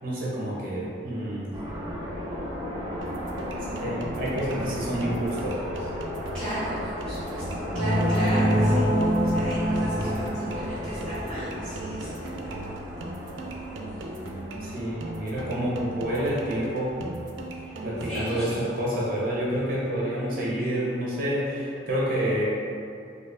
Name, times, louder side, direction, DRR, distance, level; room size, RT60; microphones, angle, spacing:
voice 1, 0.0-1.5 3.6-5.9 8.5-8.8 10.1-10.2 14.6-16.9 17.8-22.4, equal, 50° right, -6 dB, 0.9 m, -28 dB
sound 1, 1.5-19.9, equal, 20° right, 0.6 m, -36 dB
sound 2, 3.0-19.0, right 2 dB, 85° right, 0.4 m, -39 dB
voice 2, 6.3-8.8 9.2-12.5 13.8-14.3 17.6-17.8 18.1-18.5, equal, 5° left, -18 dB, 1.0 m, -36 dB
sound 3, 7.7-11.7, equal, 55° left, 0.9 m, -25 dB
3.9 x 2.7 x 2.6 m, 2.5 s
head